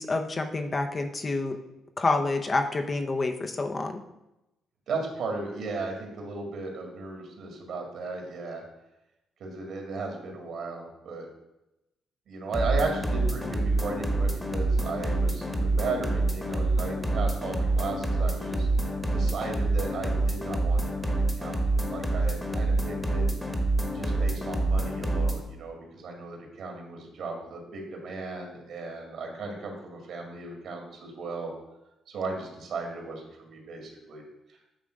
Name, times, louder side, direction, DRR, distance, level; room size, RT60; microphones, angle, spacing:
voice 1, 0.0-1.6 2.0-4.0, left 3 dB, 30° left, 6 dB, 0.8 m, -28 dB
voice 2, 4.9-8.6 9.4-11.3 12.3-21.6 21.9-23.3 23.9-31.5 32.1-34.2, right 3 dB, 65° right, 2 dB, 2.2 m, -36 dB
sound 1, 12.5-25.4, right 2 dB, 5° left, 1.2 m, -27 dB
8.8 x 3.5 x 6.5 m, 0.92 s
cardioid pair, 90°, 0 cm